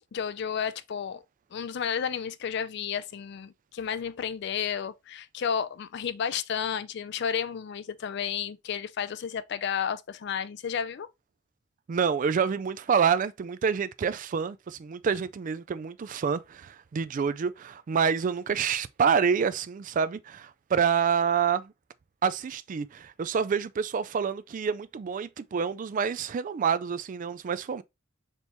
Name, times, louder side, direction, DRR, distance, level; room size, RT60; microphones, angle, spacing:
voice 1, 0.1-1.2 1.5-11.1, left 7 dB, 60° left, 0.4 m, -32 dB
voice 2, 11.9-21.7 22.2-27.8, right 6 dB, 40° right, 0.3 m, -27 dB
4.4 x 3.0 x 3.3 m
head